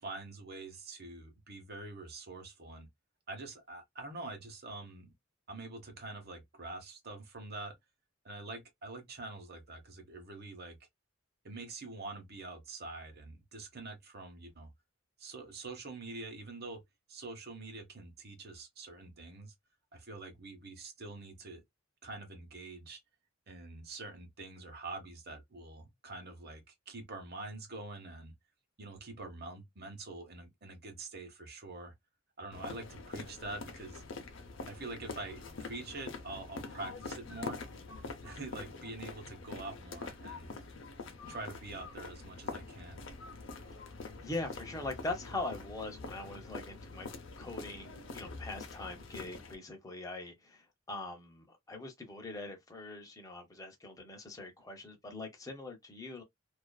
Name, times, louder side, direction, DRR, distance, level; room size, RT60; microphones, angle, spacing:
voice 1, 0.0-2.9 3.3-5.1 5.5-7.7 8.2-10.8 11.4-14.7 15.2-16.8 17.1-19.5 19.9-21.6 22.0-23.0 23.5-28.3 28.8-31.9 32.4-34.0 34.7-37.6 38.2-40.6 41.3-43.1, right 2 dB, 50° right, 1.0 m, -45 dB
sound 1, 32.5-49.5, left 3 dB, 65° left, 0.6 m, -45 dB
voice 2, 44.2-47.1 47.4-56.2, left 2 dB, 20° left, 0.7 m, -42 dB
2.5 x 2.4 x 2.2 m
head